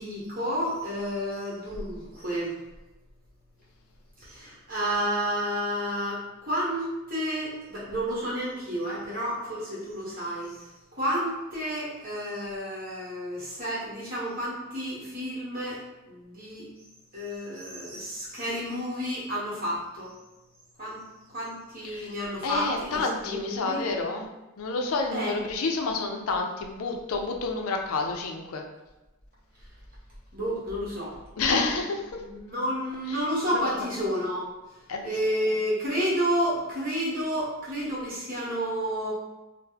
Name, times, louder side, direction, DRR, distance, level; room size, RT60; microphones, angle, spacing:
voice 1, 0.0-2.6 4.2-16.7 17.1-20.1 20.8-21.0 21.3-23.8 25.1-25.4 30.3-31.1 31.8-31.9 32.2-34.5 35.0-39.1, equal, 40° right, -7 dB, 1.2 m, -31 dB
voice 2, 22.4-24.3 24.6-28.6 31.4-32.0 33.1-33.2 33.5-33.6 34.9-35.0, left 3 dB, 80° left, 3 dB, 0.5 m, -29 dB
2.8 x 2.1 x 3.7 m, 1.0 s
head